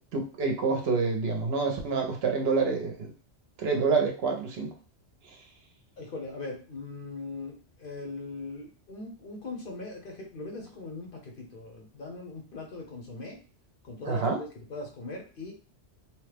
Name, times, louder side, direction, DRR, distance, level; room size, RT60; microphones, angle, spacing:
voice 1, 0.1-3.1 3.6-4.7 5.3-5.4 14.1-14.4, right 4 dB, 65° right, 3 dB, 0.7 m, -27 dB
voice 2, 6.0-13.4 13.8-15.5, left 3 dB, 55° left, 1 dB, 0.8 m, -40 dB
2.9 x 2.0 x 3.2 m, 0.37 s
omnidirectional pair, 1.2 m